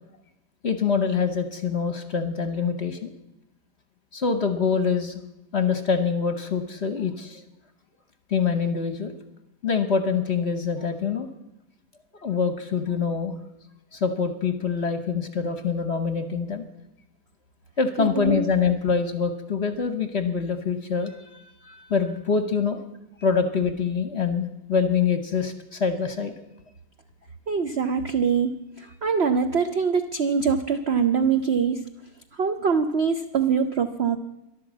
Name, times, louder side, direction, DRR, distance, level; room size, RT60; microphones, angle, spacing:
voice 1, 0.6-3.1 4.1-5.2 5.5-7.4 8.3-9.1 9.6-11.3 12.2-13.3 13.9-16.6 17.8-22.8 23.2-26.3, left 5 dB, 45° left, 8 dB, 0.9 m, -25 dB
voice 2, 18.0-18.4 27.5-31.8 32.4-34.2, right 6 dB, 75° right, 7 dB, 0.5 m, -23 dB
13.0 x 11.5 x 7.3 m, 0.93 s
omnidirectional pair, 2.0 m